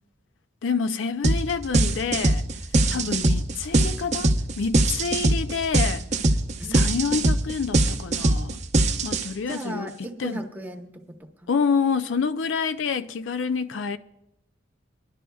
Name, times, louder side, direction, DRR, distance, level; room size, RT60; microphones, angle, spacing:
voice 1, 0.6-2.4 2.9-6.1 6.7-8.6 9.0-9.9 10.2-10.5 11.5-14.0, left 5 dB, 90° left, 0.5 m, -27 dB
sound 1, 1.2-1.4 1.7-9.5, right 2 dB, 40° right, 0.7 m, -21 dB
voice 2, 2.9-3.2 6.6-6.9 9.5-11.0 11.4-11.5, right 1 dB, 10° right, 0.9 m, -35 dB
22.5 x 11.5 x 2.3 m
head